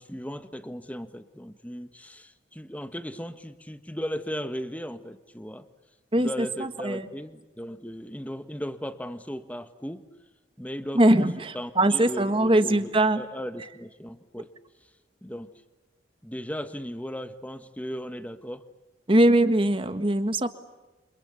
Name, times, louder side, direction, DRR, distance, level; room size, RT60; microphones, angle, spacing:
voice 1, 0.0-5.7 6.2-10.0 10.6-11.2 11.5-12.9 13.2-14.5 15.2-15.5 16.2-18.6, equal, 10° left, 10 dB, 1.4 m, -37 dB
voice 2, 6.1-7.1 10.9-13.2 19.1-20.5, right 1 dB, 30° right, 10 dB, 1.6 m, -22 dB
29.5 x 26.5 x 7.0 m, 1.1 s
head